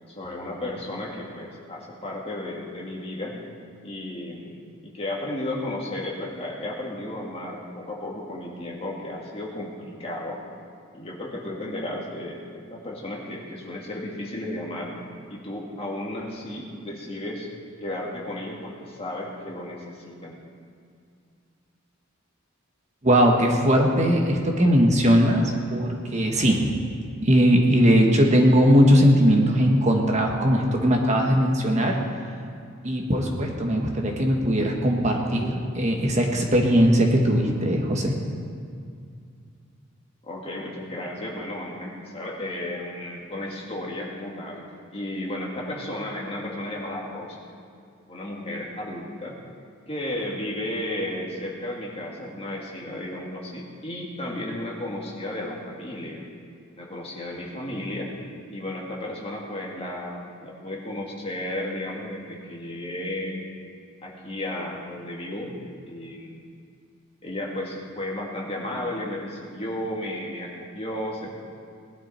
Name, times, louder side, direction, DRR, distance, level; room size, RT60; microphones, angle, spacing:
voice 1, 0.1-3.4 3.8-10.4 10.9-14.9 15.3-17.5 17.8-20.4 40.2-47.4 48.1-49.3 49.9-56.2 56.8-58.1 58.5-63.4 64.0-65.5 65.8-66.4 67.2-71.4, left 1 dB, 30° left, -2 dB, 2.2 m, -33 dB
voice 2, 23.0-26.7 27.2-32.0 32.8-38.1, equal, 35° right, 1 dB, 1.3 m, -19 dB
19.5 x 11.5 x 4.4 m, 2.3 s
head